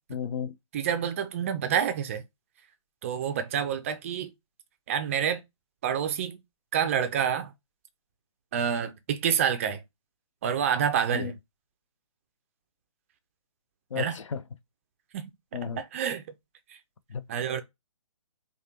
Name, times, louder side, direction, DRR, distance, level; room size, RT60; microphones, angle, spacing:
voice 1, 0.1-0.6 11.1-11.3 13.9-14.4 15.5-15.8 17.1-17.2, left 7 dB, 70° left, 0.5 m, -33 dB
voice 2, 0.7-2.2 3.0-4.3 4.9-5.4 5.8-6.4 6.7-7.5 8.5-9.8 10.4-11.3 14.0-14.1 15.1-15.2 15.8-16.2 17.3-17.6, right 8 dB, 25° right, 0.4 m, -27 dB
4.7 x 2.2 x 2.9 m
figure-of-eight pair, 140°, 17 cm